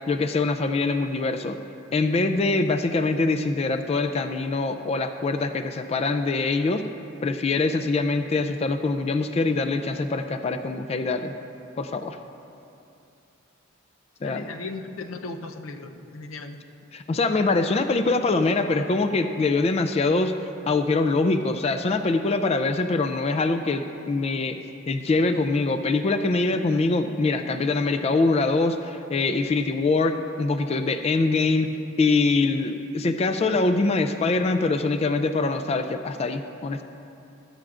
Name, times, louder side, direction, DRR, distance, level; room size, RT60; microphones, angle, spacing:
voice 1, 0.1-1.6 1.9-6.8 7.2-11.3 11.8-12.2 14.2-14.5 16.9-24.6 24.9-31.7 32.0-36.8, left 3 dB, 30° left, 8 dB, 0.3 m, -24 dB
voice 2, 14.2-16.6, left 3 dB, 85° left, 7 dB, 0.7 m, -37 dB
15.0 x 11.5 x 2.5 m, 2.7 s
head